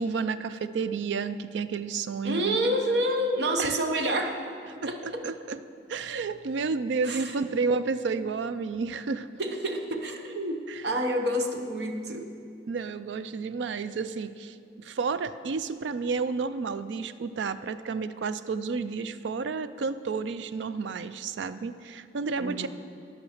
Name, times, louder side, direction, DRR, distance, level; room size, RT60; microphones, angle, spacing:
voice 1, 0.0-2.8 3.6-3.7 4.7-5.6 5.9-9.3 10.7-10.8 12.7-22.7, right 4 dB, 85° right, 13 dB, 0.4 m, -31 dB
voice 2, 2.2-4.4 4.9-5.2 7.1-7.3 9.4-12.3 22.4-22.7, right 1 dB, 70° right, 5 dB, 0.8 m, -28 dB
11.5 x 5.2 x 6.4 m, 2.4 s
head